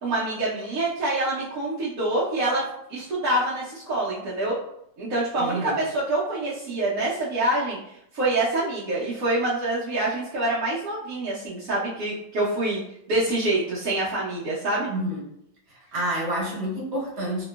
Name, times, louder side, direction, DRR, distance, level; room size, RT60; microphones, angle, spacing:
voice 1, 0.0-2.6 2.9-4.5 5.0-7.8 8.1-12.8 13.1-14.9, right 2 dB, 70° right, -9 dB, 0.8 m, -26 dB
voice 2, 5.4-5.8 14.9-15.2 15.7-17.4, right 1 dB, 40° right, -5 dB, 1.1 m, -29 dB
3.1 x 2.9 x 2.2 m, 0.76 s
omnidirectional pair, 2.2 m